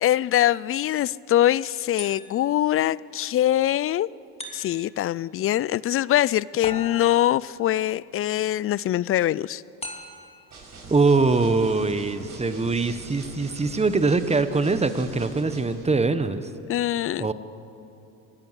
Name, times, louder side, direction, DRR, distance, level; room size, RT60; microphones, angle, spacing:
voice 1, 0.0-4.1 4.5-9.6 16.7-17.3, left 13 dB, 35° left, 22 dB, 0.4 m, -23 dB
sound 1, 2.0-2.6 4.4-5.0 6.6-7.4 9.8-10.4, left 2 dB, 15° left, 2.8 m, -39 dB
sound 2, 10.5-15.8, right 3 dB, 45° right, 6.1 m, -43 dB
voice 2, 10.9-16.5 17.2-17.3, right 3 dB, 15° right, 11 dB, 1.2 m, -22 dB
24.5 x 13.5 x 8.2 m, 2.9 s
supercardioid pair, 90°, 40 cm